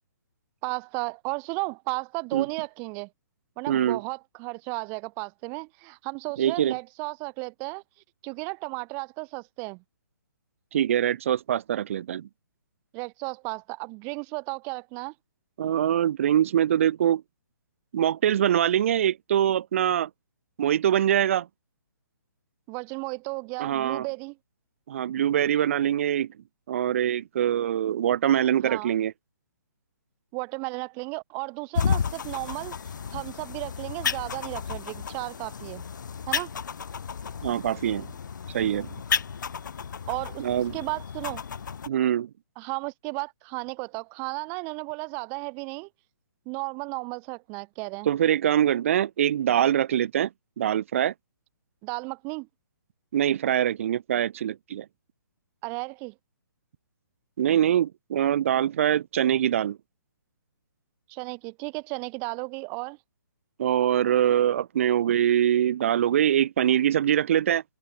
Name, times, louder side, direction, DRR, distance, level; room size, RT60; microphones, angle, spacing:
voice 1, 0.6-3.1 3.6-7.8 8.2-9.8 12.9-15.1 22.7-24.4 28.6-29.0 30.3-32.7 33.1-35.8 36.3-36.5 40.1-40.4 40.7-41.4 42.6-45.9 46.5-48.1 51.8-52.5 55.6-56.1 61.1-63.0, right 33 dB, 20° right, 7.2 m, -34 dB
voice 2, 3.7-4.0 6.4-6.8 10.7-12.3 15.6-17.2 17.9-20.1 20.6-21.5 23.6-24.1 24.9-26.3 26.7-29.1 37.4-38.1 38.5-38.9 40.4-40.8 41.9-42.3 48.1-50.3 50.6-51.1 53.1-54.9 57.4-59.8 63.6-67.6, right 10 dB, 40° right, 2.4 m, -23 dB
sound 1, 31.7-41.9, left 6 dB, 60° left, 4.2 m, -32 dB
open air
hypercardioid pair, 170°, 11 cm